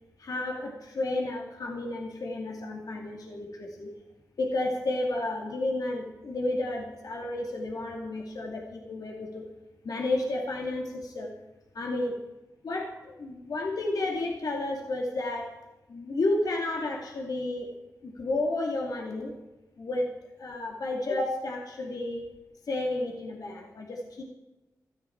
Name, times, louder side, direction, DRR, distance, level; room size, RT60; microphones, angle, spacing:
voice 1, 0.2-3.9 4.4-9.5 9.8-11.3 11.7-12.1 12.6-15.5 15.9-19.3 19.8-20.1 20.4-22.3 22.7-24.2, left 2 dB, 70° left, 0 dB, 2.4 m, -31 dB
17.5 x 13.5 x 4.5 m, 1.1 s
cardioid pair, 60°, 7 cm